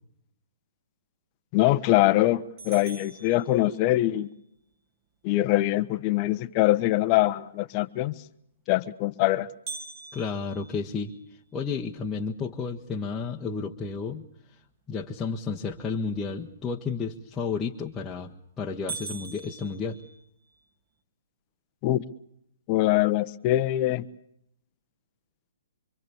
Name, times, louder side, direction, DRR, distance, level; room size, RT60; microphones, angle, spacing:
voice 1, 1.5-4.3 5.2-8.1 8.7-9.5 21.8-22.0 22.7-24.1, left 16 dB, 35° left, 14 dB, 1.1 m, -23 dB
sound 1, 2.6-4.2 9.7-11.8 12.3-12.4 12.9-13.0 13.7-14.0 17.6-18.0 18.4-18.5 18.9-20.6, right 4 dB, 35° right, 3.2 m, -42 dB
voice 2, 10.1-11.1 11.5-14.3 14.9-20.0, left 5 dB, 15° left, -2 dB, 1.5 m, -32 dB
26.5 x 25.0 x 7.1 m, 0.74 s
figure-of-eight pair, 125°, 0 cm